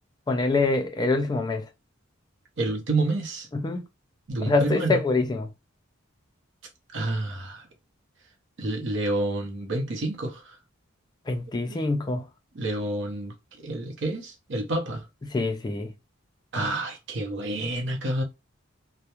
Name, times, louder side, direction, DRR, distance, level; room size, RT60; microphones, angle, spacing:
voice 1, 0.3-1.6 3.5-3.8 4.5-5.5 11.3-12.2 15.3-15.9, left 3 dB, 20° left, 0.3 m, -25 dB
voice 2, 2.6-3.5 4.3-5.0 6.9-7.7 8.6-10.6 11.7-11.8 12.5-15.0 16.5-18.2, right 2 dB, 60° right, 0.7 m, -29 dB
2.3 x 2.1 x 2.8 m
head